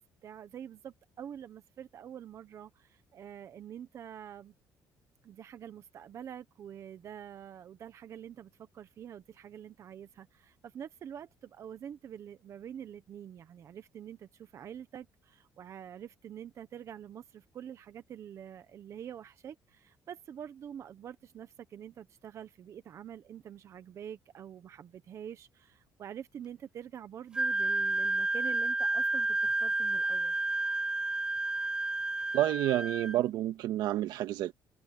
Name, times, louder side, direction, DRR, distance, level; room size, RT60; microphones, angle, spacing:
voice 1, 0.0-4.5 5.2-30.3, right 9 dB, 45° right, 1.1 m, -46 dB
Wind instrument woodwind instrument, 27.3-33.2, right 2 dB, 10° right, 0.4 m, -30 dB
voice 2, 32.3-34.5, right 14 dB, 80° right, 1.9 m, -29 dB
cardioid pair, 155°, 7 cm